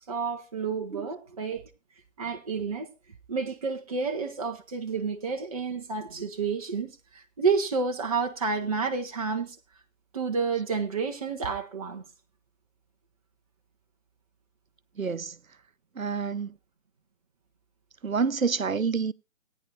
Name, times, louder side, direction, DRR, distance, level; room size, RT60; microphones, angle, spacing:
voice 1, 0.1-1.6 2.2-2.9 3.3-9.6 10.1-12.0, right 5 dB, 30° right, 0.8 m, -30 dB
voice 2, 15.0-15.4 15.9-16.5 18.0-19.1, right 5 dB, 90° right, 0.7 m, -28 dB
17.5 x 9.8 x 2.9 m
figure-of-eight pair, 145°, 39 cm